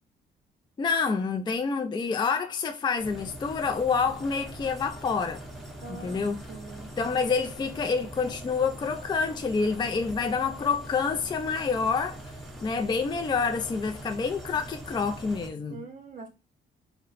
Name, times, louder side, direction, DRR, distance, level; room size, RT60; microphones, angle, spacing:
voice 1, 0.8-5.4 5.9-6.4 7.0-12.2 12.6-15.9, left 5 dB, 20° left, 0.4 m, -28 dB
sound 1, 3.0-15.5, right 1 dB, ahead, 0.8 m, -42 dB
voice 2, 5.8-6.2 6.5-6.9 15.7-16.3, right 4 dB, 45° right, 0.7 m, -43 dB
2.9 x 2.1 x 3.9 m
cardioid pair, 90°, 20 cm